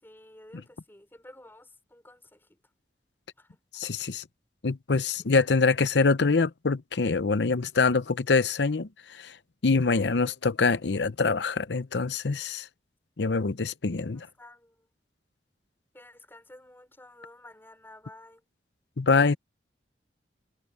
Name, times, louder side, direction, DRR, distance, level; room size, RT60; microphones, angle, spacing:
voice 1, 0.0-2.6 3.4-3.6 5.2-5.3 14.1-14.9 15.9-18.4, left 1 dB, 15° left, 5.2 m, -52 dB
voice 2, 3.7-4.2 4.6-9.4 9.6-12.7 13.2-14.3 19.0-19.4, left 4 dB, 75° left, 0.8 m, -25 dB
head